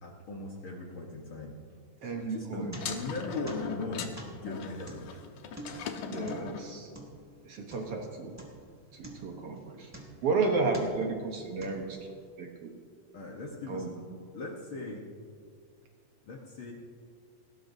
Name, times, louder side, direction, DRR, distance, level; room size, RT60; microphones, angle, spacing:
voice 1, 0.0-1.5 2.3-5.0 13.1-14.0 14.3-15.0 16.2-16.7, left 2 dB, 55° left, -1 dB, 1.6 m, -39 dB
voice 2, 2.0-2.7 6.1-6.9 7.5-8.3 8.9-9.9 10.2-12.0 12.4-12.7 13.7-14.0, right 4 dB, 60° right, 2 dB, 1.9 m, -32 dB
sound 1, 2.1-3.2 3.5-8.1 8.4-8.7 9.0-10.3 10.7-11.1 11.6-12.2, right 1 dB, 10° right, 1.2 m, -47 dB
sound 2, 2.7-6.7, left 7 dB, 90° left, 2.4 m, -39 dB
20.0 x 17.5 x 2.7 m, 2.1 s
omnidirectional pair, 3.4 m